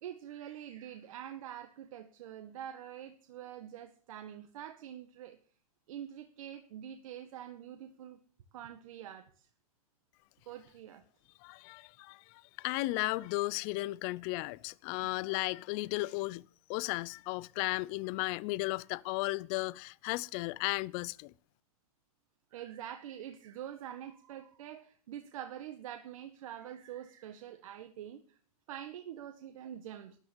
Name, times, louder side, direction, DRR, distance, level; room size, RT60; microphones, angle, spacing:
voice 1, 0.0-5.4 5.9-8.2 8.5-9.5 10.4-11.0 22.5-28.4 28.7-30.2, right 10 dB, 65° right, 1.8 m, -45 dB
voice 2, 11.4-21.3, left 21 dB, 40° left, 0.6 m, -35 dB
13.5 x 11.0 x 7.4 m
hypercardioid pair, 130°, 19 cm